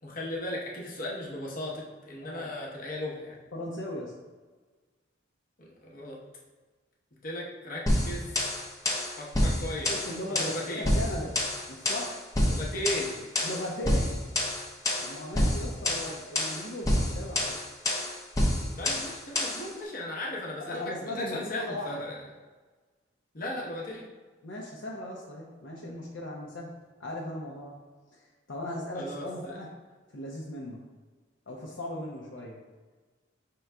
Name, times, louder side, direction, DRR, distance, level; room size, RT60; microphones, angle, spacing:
voice 1, 0.0-3.4 5.6-6.2 7.2-8.3 9.2-9.9 10.3-10.8 12.5-13.2 18.8-22.2 23.3-24.1 28.9-29.6, left 1 dB, 45° left, -3 dB, 0.9 m, -36 dB
voice 2, 2.2-2.5 3.5-4.1 9.8-11.3 11.7-12.1 13.4-14.1 15.0-17.5 20.6-22.0 24.4-26.7 27.0-27.8 28.5-29.7 30.1-30.8 31.5-32.6, left 1 dB, 70° left, -3 dB, 0.6 m, -37 dB
sound 1, 7.9-19.7, left 1 dB, 20° left, 0.7 m, -28 dB
5.8 x 3.8 x 2.2 m, 1.3 s
head